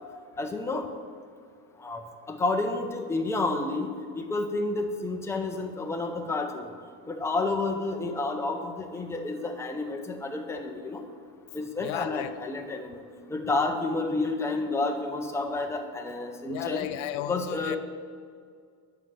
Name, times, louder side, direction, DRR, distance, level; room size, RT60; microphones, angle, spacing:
voice 1, 0.4-0.9 1.8-2.0 2.3-3.9 4.2-6.7 7.1-11.0 11.5-13.0 13.3-16.9 17.3-17.8, left 3 dB, 5° left, 3 dB, 0.5 m, -30 dB
voice 2, 11.8-12.3 16.5-17.8, left 12 dB, 70° left, 12 dB, 0.6 m, -34 dB
7.7 x 5.5 x 7.5 m, 2.1 s
cardioid pair, 145°, 49 cm